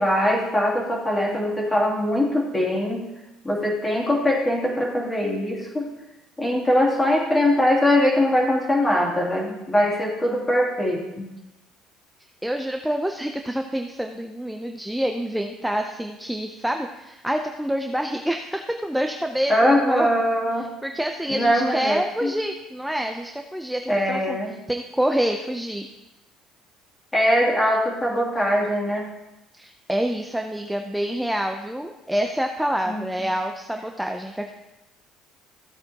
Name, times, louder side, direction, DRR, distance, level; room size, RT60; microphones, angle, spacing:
voice 1, 0.0-3.1 3.4-5.9 6.4-11.3 19.5-20.7 21.3-22.3 23.9-24.6 27.1-29.1 32.9-33.0, left 1 dB, 15° left, -2 dB, 2.8 m, -22 dB
voice 2, 12.4-20.1 20.8-24.4 24.7-25.9 29.5-34.5, equal, 5° right, 4 dB, 0.6 m, -27 dB
14.5 x 8.5 x 2.9 m, 0.97 s
cardioid pair, 110°, 0 cm